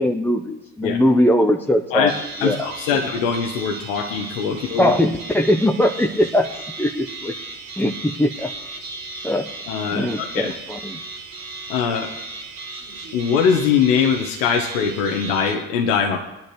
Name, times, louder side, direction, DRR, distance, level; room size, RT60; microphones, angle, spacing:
voice 1, 0.0-2.1 2.4-2.6 2.9-3.0 4.8-6.5 6.8-7.3 7.8-8.5 9.2-9.5 9.9-11.0, left 1 dB, 5° left, 2 dB, 0.8 m, -20 dB
sound 1, 2.1-15.5, right 3 dB, 75° right, 2.8 m, -35 dB
voice 2, 2.4-4.9 9.7-10.5 11.7-12.1 13.1-16.2, left 6 dB, 75° left, 3 dB, 1.2 m, -21 dB
19.0 x 10.5 x 3.1 m, 0.99 s
hypercardioid pair, 60°, 38 cm